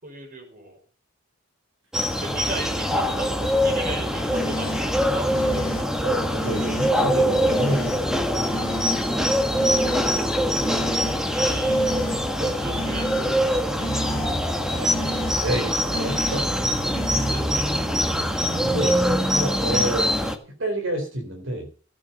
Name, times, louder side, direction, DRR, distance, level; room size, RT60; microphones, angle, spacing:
voice 1, 0.0-0.8 2.2-5.3 11.2-11.8 12.3-13.1 16.0-16.1 17.1-17.9, right 1 dB, 45° right, 3 dB, 5.6 m, -36 dB
sound 1, 1.9-20.4, equal, 5° right, 1.6 m, -23 dB
sound 2, 4.3-4.8 5.3-5.8 6.4-6.9 7.5-8.0 8.5-9.0 9.6-10.1 10.6-11.1 11.6-12.2 12.7-13.3 13.8-14.3 14.8-15.4 15.9-16.4 16.9-17.3, equal, 40° left, 2.8 m, -32 dB
voice 2, 6.0-8.5 14.7-16.4 18.5-20.1 20.6-21.7, right 1 dB, 70° right, 2 dB, 3.9 m, -29 dB
15.0 x 8.8 x 5.4 m, 0.38 s
head